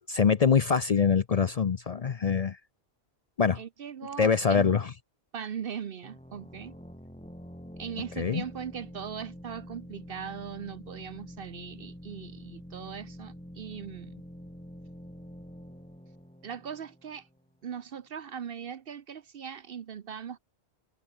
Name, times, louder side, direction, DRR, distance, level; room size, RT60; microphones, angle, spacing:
voice 1, 0.0-2.6 3.4-3.6 4.2-4.9 8.2-8.4, left 6 dB, 45° left, 0.6 m, -24 dB
voice 2, 3.6-4.7 5.3-6.8 7.8-14.2 16.4-17.3 17.6-20.4, right 8 dB, 65° right, 1.0 m, -39 dB
sound 1, 6.0-17.5, equal, 5° left, 7.2 m, -46 dB
omnidirectional pair, 1.0 m